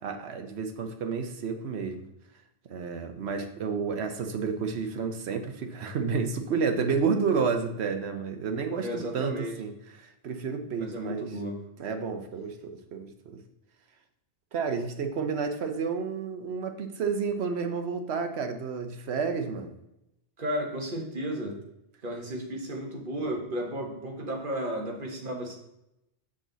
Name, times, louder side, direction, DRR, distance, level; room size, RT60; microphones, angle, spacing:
voice 1, 0.0-2.1 2.7-11.3 11.8-13.4 14.5-19.7, right 5 dB, 70° right, 7 dB, 1.0 m, -31 dB
voice 2, 8.8-9.5 10.8-11.6 20.4-21.6 22.0-25.6, equal, 50° right, 0 dB, 1.5 m, -33 dB
6.4 x 6.2 x 3.9 m, 0.86 s
omnidirectional pair, 1.1 m